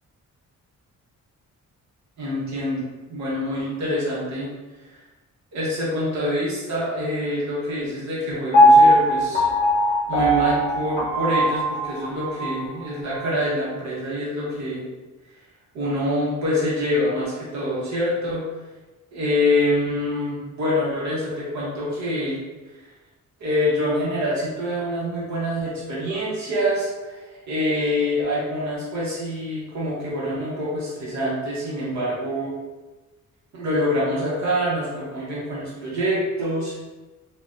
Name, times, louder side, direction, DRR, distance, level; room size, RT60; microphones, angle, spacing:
voice 1, 2.2-2.8 3.1-4.5 5.5-9.5 10.1-14.8 15.7-18.4 19.1-22.4 23.4-27.2 27.5-32.5 33.5-36.8, left 1 dB, 65° right, -7 dB, 1.1 m, -25 dB
Piano, 8.5-12.6 13.1-13.2, equal, 25° left, 0.8 m, -18 dB
4.0 x 2.3 x 2.5 m, 1.2 s
wide cardioid pair, 160°, 30 cm